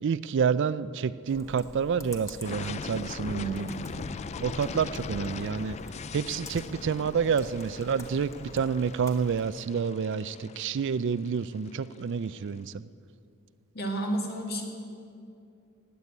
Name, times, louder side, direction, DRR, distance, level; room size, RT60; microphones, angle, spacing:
voice 1, 0.0-3.7 4.4-5.8 6.1-12.9, right 6 dB, 55° right, 16 dB, 0.4 m, -29 dB
Computer keyboard, 1.3-9.5, equal, 15° left, 1.2 m, -48 dB
sound 1, 2.4-12.3, left 5 dB, 30° left, 0.3 m, -40 dB
voice 2, 3.3-3.7 13.7-14.6, right 1 dB, 45° left, 1 dB, 2.2 m, -31 dB
16.5 x 8.4 x 9.5 m, 2.6 s
head